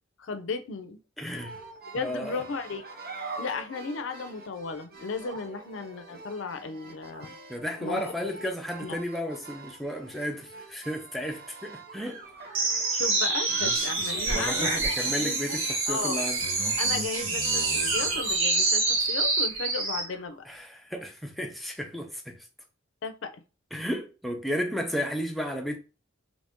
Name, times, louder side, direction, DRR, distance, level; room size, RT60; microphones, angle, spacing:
voice 1, 0.2-1.0 1.9-2.8 3.4-7.3 7.8-8.1 8.8-9.0 12.9-15.6 15.9-16.2 16.8-20.4 23.0-23.3, left 4 dB, 70° left, 0.5 m, -35 dB
voice 2, 1.2-1.6 1.9-2.4 7.5-12.2 14.3-16.4 20.5-22.4 23.7-25.8, equal, ahead, 0.6 m, -33 dB
sound 1, 1.3-18.4, right 3 dB, 50° right, 0.7 m, -45 dB
sound 2, 12.5-20.1, right 3 dB, 85° right, 1.1 m, -26 dB
3.1 x 2.6 x 3.5 m
head